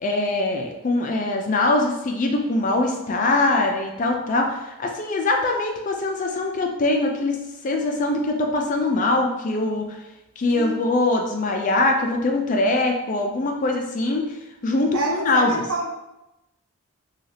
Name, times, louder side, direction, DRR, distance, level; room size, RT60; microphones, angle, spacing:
voice 1, 0.0-7.4 7.6-10.0 10.4-14.3 14.6-15.6, left 2 dB, 35° left, 2 dB, 0.3 m, -22 dB
voice 2, 10.5-10.8 14.9-15.9, right 2 dB, 85° right, -2 dB, 0.7 m, -28 dB
2.6 x 2.3 x 3.2 m, 0.95 s
head